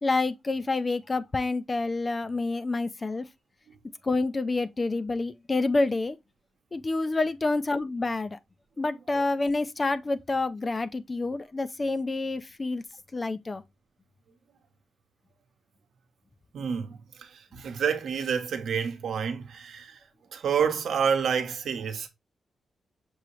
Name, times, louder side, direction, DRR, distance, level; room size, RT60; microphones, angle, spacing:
voice 1, 0.0-3.2 4.0-6.2 6.7-8.4 8.8-12.8 13.1-13.6, left 3 dB, 20° left, 0.3 m, -28 dB
voice 2, 16.5-20.0 20.3-22.1, right 7 dB, 70° right, 0.9 m, -29 dB
6.1 x 2.8 x 3.1 m
wide cardioid pair, 165°, 0 cm